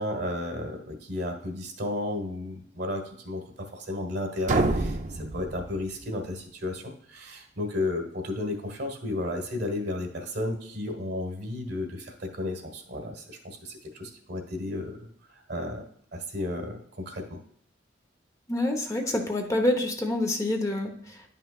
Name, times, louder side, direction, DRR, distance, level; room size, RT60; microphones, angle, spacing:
voice 1, 0.0-15.8 16.1-17.4, left 1 dB, 65° right, 3 dB, 1.5 m, -33 dB
sound 1, 4.5-6.3, right 2 dB, 45° right, 0.6 m, -28 dB
voice 2, 18.5-21.2, left 1 dB, 20° left, 3 dB, 0.9 m, -27 dB
10.5 x 5.6 x 2.4 m, 0.65 s
head